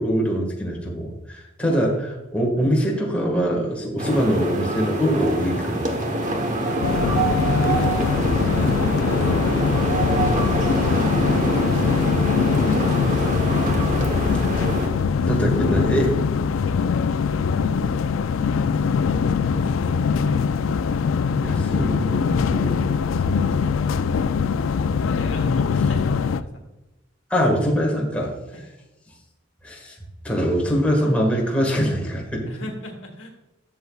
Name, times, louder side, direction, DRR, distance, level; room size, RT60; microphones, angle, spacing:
voice 1, 0.0-5.8 12.6-12.8 15.3-16.2 21.4-23.7 27.3-28.4 29.6-30.0 30.2-32.5, equal, 5° left, -2 dB, 1.7 m, -23 dB
voice 2, 1.6-2.2 2.6-2.7 6.9-9.8 10.2-10.9 12.7-13.5 15.6-15.9 17.5-18.2 19.5-20.7 24.1-24.3 25.1-26.6 28.5-28.6 32.5-33.3, left 1 dB, 75° left, 3 dB, 1.5 m, -38 dB
sound 1, 4.0-14.9, right 1 dB, 40° right, 1.1 m, -25 dB
sound 2, 6.8-26.4, left 6 dB, 90° left, 0.4 m, -22 dB
12.5 x 6.8 x 2.4 m, 1.0 s
head